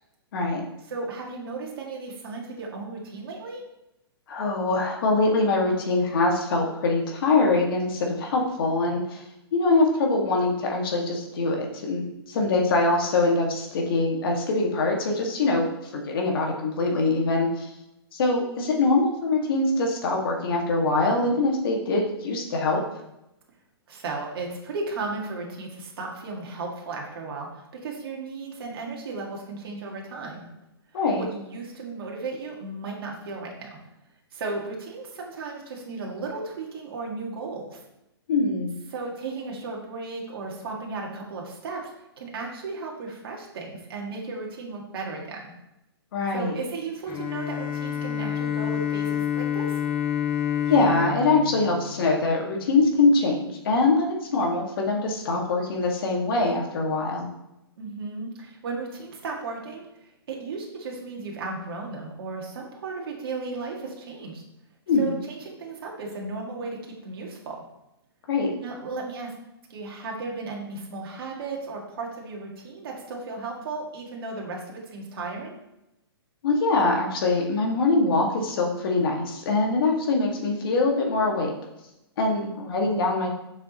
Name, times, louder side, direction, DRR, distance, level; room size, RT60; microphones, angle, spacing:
voice 1, 0.9-3.6 12.1-12.8 23.9-30.5 30.9-33.8 34.3-37.8 38.9-41.9 42.2-45.4 46.3-49.8 57.8-64.4 65.0-66.8 67.0-67.6 68.6-69.3 69.7-75.6 82.7-82.9, right 3 dB, 60° right, -1 dB, 1.8 m, -35 dB
voice 2, 4.3-9.2 9.5-17.7 18.1-22.8 30.9-31.2 38.3-38.7 46.1-46.6 50.7-57.3 64.9-65.1 68.3-68.5 76.4-81.5 82.2-83.3, left 3 dB, 60° left, 0 dB, 1.9 m, -23 dB
Bowed string instrument, 47.1-52.7, left 9 dB, 35° left, 1.5 m, -28 dB
7.3 x 6.0 x 3.0 m, 0.89 s
hypercardioid pair, 125°, 14 cm